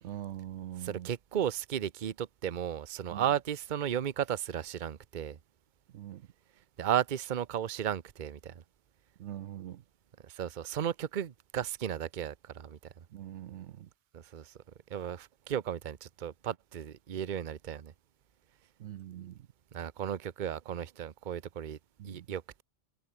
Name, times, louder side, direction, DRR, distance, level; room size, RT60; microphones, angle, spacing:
voice 1, 0.0-1.1 3.1-3.3 5.9-6.3 9.2-9.8 13.1-13.9 18.8-19.5 22.0-22.3, right 11 dB, 75° right, 1.0 m, -43 dB
voice 2, 0.8-5.4 6.8-8.6 10.2-13.0 14.1-14.5 14.9-17.9 19.7-21.8 22.0-22.6, right 9 dB, 45° right, 0.9 m, -34 dB
omnidirectional pair, 1.2 m